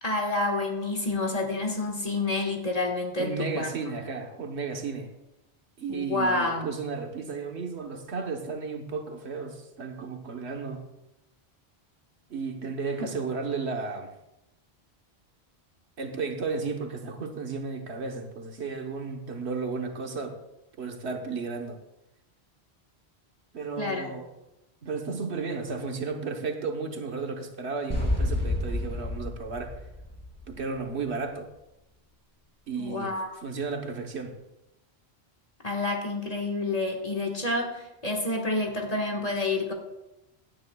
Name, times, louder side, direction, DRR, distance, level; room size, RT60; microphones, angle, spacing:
voice 1, 0.0-3.7 5.9-6.7 23.8-24.1 32.8-33.3 35.6-39.7, left 2 dB, 35° left, 1 dB, 1.7 m, -29 dB
voice 2, 3.1-5.1 5.8-10.8 12.3-14.1 16.0-20.4 20.8-21.8 23.5-24.3 24.8-29.7 30.5-31.5 32.7-34.3, right 4 dB, 80° right, 4 dB, 1.4 m, -33 dB
sound 1, 27.9-30.9, left 1 dB, 15° left, 4.3 m, -30 dB
16.0 x 10.0 x 2.3 m, 0.93 s
omnidirectional pair, 1.1 m